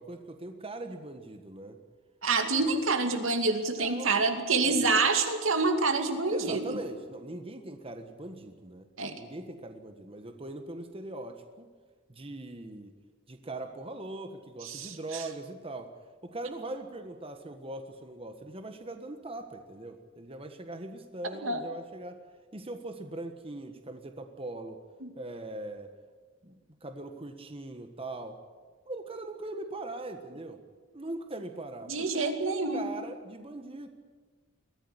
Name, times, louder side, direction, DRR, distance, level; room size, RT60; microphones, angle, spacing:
voice 1, 0.0-1.8 2.4-2.5 3.8-4.3 4.6-4.9 6.3-11.7 12.1-12.9 13.3-15.9 16.2-22.2 22.5-24.8 25.2-25.9 26.4-28.4 28.8-30.6 30.9-33.9, right 2 dB, 30° right, 6 dB, 1.5 m, -41 dB
voice 2, 2.2-6.8 9.0-9.2 14.6-15.2 21.4-21.6 25.0-25.1 31.9-32.9, right 3 dB, 80° right, 6 dB, 2.5 m, -27 dB
22.5 x 15.5 x 9.9 m, 1.5 s
head